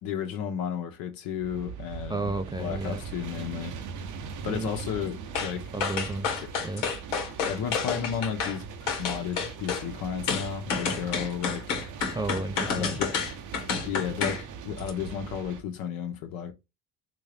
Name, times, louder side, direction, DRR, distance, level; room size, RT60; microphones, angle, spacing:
voice 1, 0.0-3.7 4.4-5.7 7.5-8.6 9.0-11.8 12.7-13.1 13.8-16.5, left 8 dB, 70° left, 1.1 m, -33 dB
sound 1, 1.4-15.6, right 6 dB, 55° right, 0.8 m, -40 dB
voice 2, 2.1-3.0 4.4-4.7 5.7-6.9 12.1-13.0, right 2 dB, 10° right, 0.4 m, -33 dB
sound 2, 5.3-5.5 5.8-8.6 8.9-9.8 10.3-14.4 14.8-14.9, left 6 dB, 90° left, 1.3 m, -29 dB
3.9 x 2.5 x 3.4 m
supercardioid pair, 75°, 37 cm